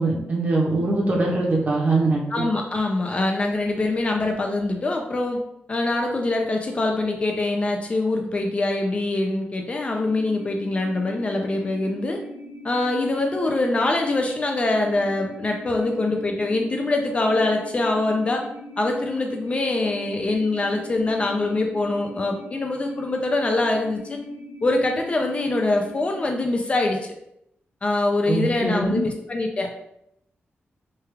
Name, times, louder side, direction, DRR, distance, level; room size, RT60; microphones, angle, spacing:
voice 1, 0.0-2.4 28.3-29.0, right 2 dB, 40° right, -2 dB, 0.8 m, -22 dB
voice 2, 2.3-5.4 5.7-12.2 12.6-18.4 18.8-24.2 24.6-27.0 27.8-29.7, left 2 dB, 30° left, 2 dB, 0.3 m, -24 dB
sound 1, 10.0-26.2, left 1 dB, 55° left, 1.0 m, -41 dB
3.2 x 2.3 x 3.2 m, 0.79 s
wide cardioid pair, 165°, 4 cm